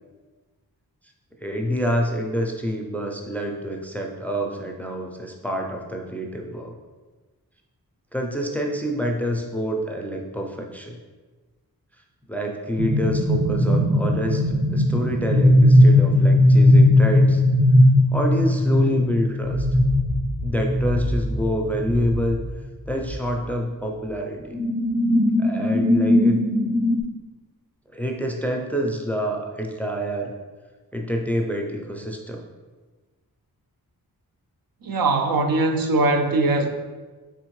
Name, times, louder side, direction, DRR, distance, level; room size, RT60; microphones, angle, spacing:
voice 1, 1.4-6.7 8.1-11.0 12.3-14.4 14.7-17.4 18.1-19.7 20.4-22.4 22.9-24.6 25.4-26.5 27.9-30.3 30.9-32.4, equal, 5° left, 1 dB, 0.4 m, -27 dB
sound 1, 12.8-22.5 22.8-23.1 24.5-27.0, left 1 dB, 30° right, 0.8 m, -18 dB
voice 2, 34.8-36.7, right 2 dB, 65° right, 5 dB, 0.5 m, -21 dB
4.2 x 3.5 x 3.1 m, 1.3 s
wide cardioid pair, 75°, 38 cm